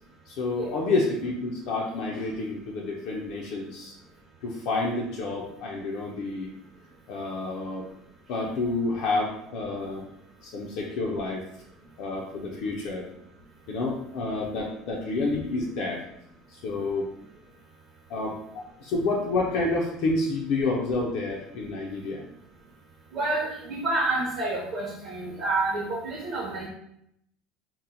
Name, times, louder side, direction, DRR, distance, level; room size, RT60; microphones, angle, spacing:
voice 1, 0.3-3.9 4.4-6.5 7.1-7.9 8.3-10.0 10.4-11.4 12.0-13.0 13.7-16.0 16.5-17.1 18.1-18.4 18.8-22.2, left 3 dB, 55° left, -2 dB, 0.4 m, -29 dB
voice 2, 23.1-26.7, right 2 dB, 35° right, -4 dB, 0.6 m, -28 dB
2.8 x 2.0 x 3.8 m, 0.76 s
cardioid pair, 175°, 0 cm